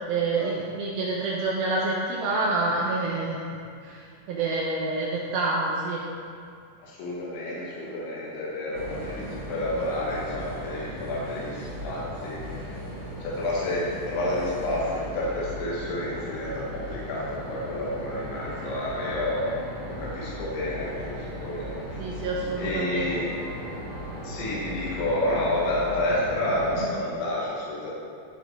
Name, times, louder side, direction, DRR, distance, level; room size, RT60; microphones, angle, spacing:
voice 1, 0.0-6.1 22.0-23.1, right 3 dB, 75° right, -3 dB, 2.3 m, -28 dB
voice 2, 6.8-12.4 13.2-19.6 19.9-22.2 22.6-23.4 24.2-27.9, left 1 dB, 85° left, -6 dB, 3.8 m, -30 dB
sound 1, 8.7-26.8, equal, 60° right, 0.8 m, -37 dB
13.5 x 5.5 x 4.6 m, 2.3 s
omnidirectional pair, 5.2 m